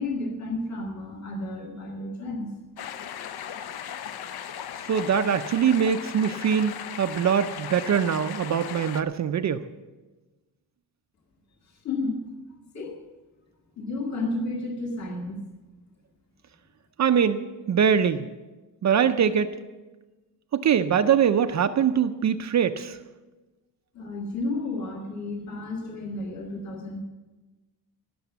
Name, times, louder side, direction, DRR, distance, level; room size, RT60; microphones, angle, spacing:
voice 1, 0.0-2.5 11.6-12.2 12.7-13.0 13.8-15.4 23.9-27.0, left 2 dB, 40° left, 0 dB, 1.7 m, -32 dB
sound 1, 2.8-9.0, left 9 dB, 65° left, 0.7 m, -37 dB
voice 2, 4.9-9.6 17.0-17.4 17.7-18.3 18.8-19.5 20.5-23.0, right 8 dB, 45° right, 9 dB, 0.5 m, -23 dB
18.5 x 7.0 x 6.9 m, 1.2 s
wide cardioid pair, 180°, 41 cm